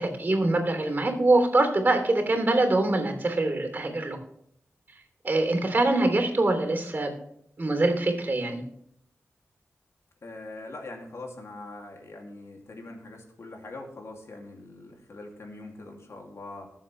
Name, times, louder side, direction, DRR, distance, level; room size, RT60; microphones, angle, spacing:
voice 1, 0.0-4.2 5.2-7.1 7.6-8.6, right 2 dB, 40° right, 4 dB, 3.3 m, -24 dB
voice 2, 10.2-16.7, left 2 dB, 70° left, 1 dB, 2.6 m, -42 dB
20.0 x 7.3 x 3.3 m, 0.72 s
wide cardioid pair, 75°, 5 cm